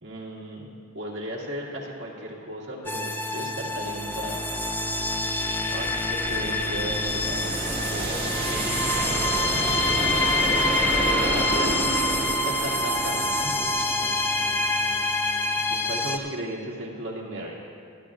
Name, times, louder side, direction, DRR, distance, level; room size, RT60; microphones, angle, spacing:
voice 1, 0.0-4.4 5.6-8.3 11.2-13.6 15.7-17.6, right 1 dB, 60° right, -4 dB, 2.3 m, -35 dB
sound 1, 2.9-16.2, left 2 dB, 10° left, 0.5 m, -26 dB
sound 2, 6.0-14.6, right 1 dB, 25° right, 1.4 m, -30 dB
voice 2, 8.8-10.2 10.8-12.4, left 1 dB, 50° left, -7 dB, 3.1 m, -47 dB
26.0 x 9.7 x 2.5 m, 2.3 s
head